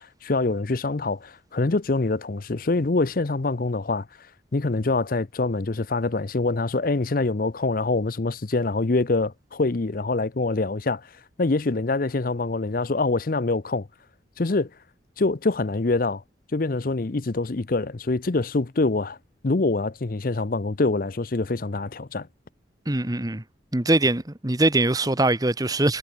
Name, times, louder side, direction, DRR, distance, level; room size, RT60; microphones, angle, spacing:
voice 1, 0.0-4.1 4.5-11.1 11.4-13.9 14.4-14.7 15.2-16.2 16.5-19.2 19.4-22.3, left 3 dB, 50° left, 0.7 m, -25 dB
voice 2, 22.9-23.4 23.7-26.0, right 2 dB, 20° right, 1.2 m, -22 dB
head